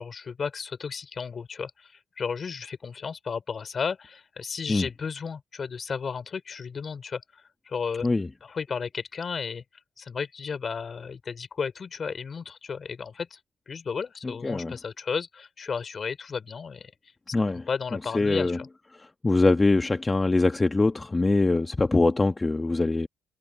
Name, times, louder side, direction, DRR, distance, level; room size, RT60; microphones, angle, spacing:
voice 1, 0.0-8.1 8.4-9.6 10.0-13.4 13.7-16.9 17.7-18.7, left 5 dB, 45° left, 3.7 m, -33 dB
voice 2, 14.4-14.8 17.3-18.6 18.9-23.1, left 3 dB, 20° left, 1.4 m, -23 dB
cardioid pair, 90°, 0 cm